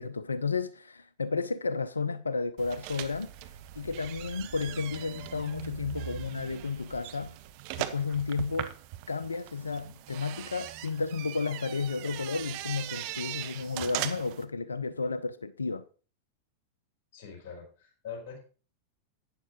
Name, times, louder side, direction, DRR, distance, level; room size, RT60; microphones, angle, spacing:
voice 1, 0.0-3.3 3.8-7.4 7.8-8.7 9.1-15.9, left 4 dB, 75° left, 0.4 m, -32 dB
sound 1, 2.6-14.4, right 14 dB, 45° right, 0.8 m, -40 dB
voice 2, 17.1-18.4, left 6 dB, 45° left, 4.3 m, -43 dB
11.5 x 8.7 x 3.1 m
figure-of-eight pair, 90°, 0 cm